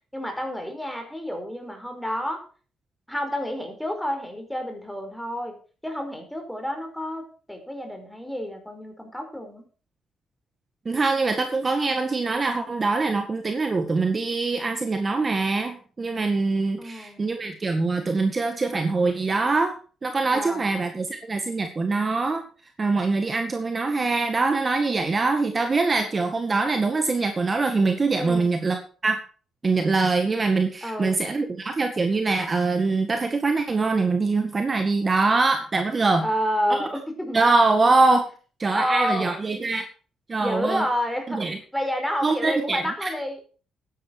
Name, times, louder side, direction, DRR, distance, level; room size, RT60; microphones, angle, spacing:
voice 1, 0.1-2.4 3.1-5.5 5.8-9.7 16.8-17.3 20.3-20.8 28.2-28.5 30.8-31.2 36.2-37.4 38.7-39.3 40.4-41.4 41.7-43.4, equal, 5° left, 5 dB, 4.8 m, -29 dB
voice 2, 10.9-19.7 20.0-22.4 22.8-29.2 29.6-36.3 36.7-36.8 37.3-38.3 38.6-39.8 40.3-40.9 41.3-41.6 42.2-43.1, right 3 dB, 30° right, 6 dB, 1.9 m, -23 dB
12.5 x 10.5 x 4.7 m, 0.39 s
cardioid pair, 90°, 0 cm